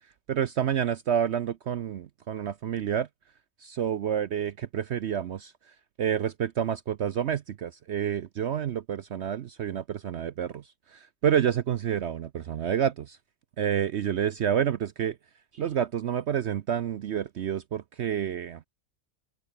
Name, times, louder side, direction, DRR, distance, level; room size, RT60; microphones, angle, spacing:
voice 1, 0.3-3.1 3.6-5.5 6.0-10.6 10.9-13.2 13.6-15.2 15.5-18.7, right 9 dB, 60° right, 0.8 m, -29 dB
open air
omnidirectional pair, 1.5 m